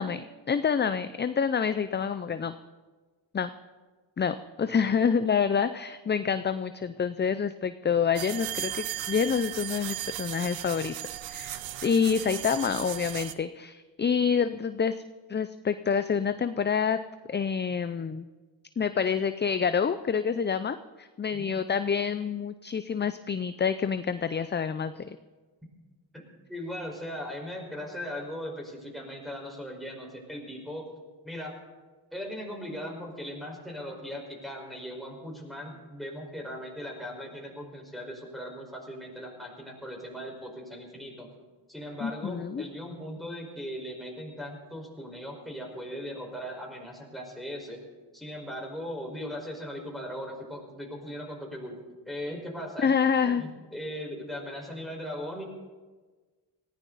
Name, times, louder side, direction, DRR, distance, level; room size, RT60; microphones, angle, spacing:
voice 1, 0.0-2.6 3.3-3.5 4.2-15.0 15.3-17.0 17.3-18.3 18.8-25.2 42.0-42.6 52.8-53.4, left 6 dB, 25° left, 12 dB, 0.5 m, -27 dB
sound 1, 8.1-13.3, right 13 dB, 70° right, 0.8 m, -36 dB
voice 2, 26.5-30.9 31.2-31.6 32.1-41.3 41.7-47.8 48.1-51.8 52.1-52.9 53.2-55.4, equal, ahead, 0 dB, 4.9 m, -38 dB
18.5 x 15.0 x 4.1 m, 1.3 s
cardioid pair, 65°, 46 cm